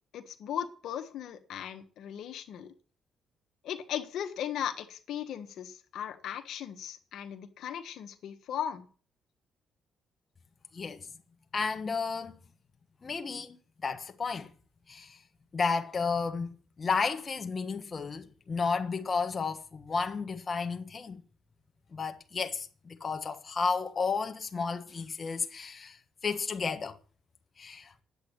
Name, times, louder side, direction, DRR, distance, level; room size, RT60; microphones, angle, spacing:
voice 1, 0.1-2.7 3.6-8.8, left 9 dB, 75° left, 1.4 m, -37 dB
voice 2, 10.7-11.1 11.5-12.4 13.0-14.5 14.9-15.2 15.5-21.2 21.9-26.0 26.2-26.9 27.6-27.9, left 5 dB, 35° left, 1.5 m, -32 dB
10.0 x 8.2 x 8.7 m
cardioid pair, 90°, 0 cm